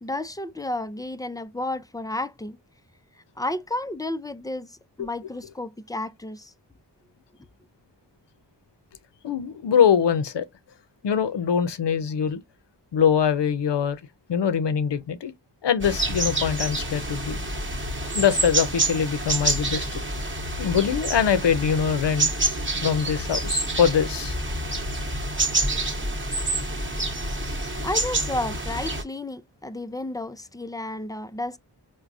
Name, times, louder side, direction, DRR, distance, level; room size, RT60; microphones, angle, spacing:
voice 1, 0.0-2.6 3.4-6.5 27.8-31.6, left 2 dB, 10° left, 0.4 m, -32 dB
voice 2, 9.2-10.5 11.0-12.4 12.9-14.0 14.3-15.3 15.6-17.4 18.0-20.0 20.6-22.3 22.8-24.4, left 7 dB, 85° left, 0.6 m, -23 dB
sound 1, 15.8-29.0, right 2 dB, 30° right, 1.0 m, -27 dB
4.6 x 2.2 x 2.5 m
wide cardioid pair, 80°, 41 cm